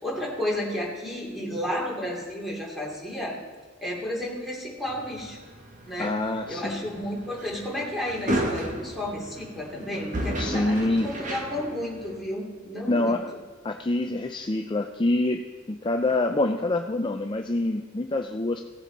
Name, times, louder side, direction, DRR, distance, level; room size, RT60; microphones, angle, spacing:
voice 1, 0.0-3.3 3.8-5.4 5.9-6.1 6.5-13.2, left 1 dB, ahead, -4 dB, 2.8 m, -32 dB
sound 1, 4.8-12.2, right 1 dB, 40° right, 1.5 m, -34 dB
voice 2, 6.0-6.8 10.4-11.1 12.9-13.3 13.6-18.6, left 2 dB, 25° left, 5 dB, 0.5 m, -26 dB
17.5 x 7.6 x 4.0 m, 1.5 s
head